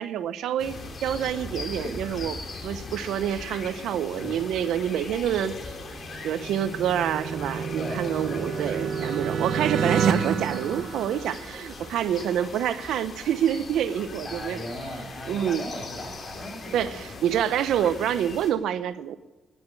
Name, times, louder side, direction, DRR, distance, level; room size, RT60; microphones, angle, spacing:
voice 1, 0.0-5.6 6.2-14.6 15.3-15.7 16.7-19.2, right 10 dB, 80° right, 13 dB, 0.7 m, -27 dB
sound 1, 0.6-18.5, left 3 dB, 45° left, 3.2 m, -40 dB
sound 2, 6.0-11.8, right 6 dB, 65° right, 1.1 m, -29 dB
voice 2, 7.7-8.7 9.3-9.5 14.2-17.3, left 1 dB, 20° left, 1 dB, 6.9 m, -38 dB
11.0 x 10.5 x 9.7 m, 1.1 s
cardioid pair, 90°, 0 cm